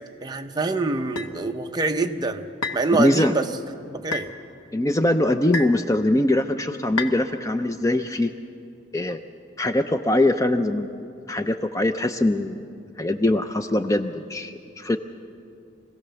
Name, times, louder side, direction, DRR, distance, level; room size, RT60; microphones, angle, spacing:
voice 1, 0.2-2.5 2.7-3.4 3.9-4.3, right 3 dB, 20° right, 5 dB, 0.7 m, -25 dB
sound 1, 1.2-1.3 2.6-2.9 4.1-4.3 5.5-5.8 7.0-7.2, left 3 dB, 90° left, 1.1 m, -29 dB
voice 2, 2.9-3.3 4.7-8.3 8.9-9.2 9.6-12.6 13.0-15.0, left 1 dB, 15° left, 8 dB, 0.4 m, -22 dB
24.5 x 16.5 x 6.9 m, 2.5 s
head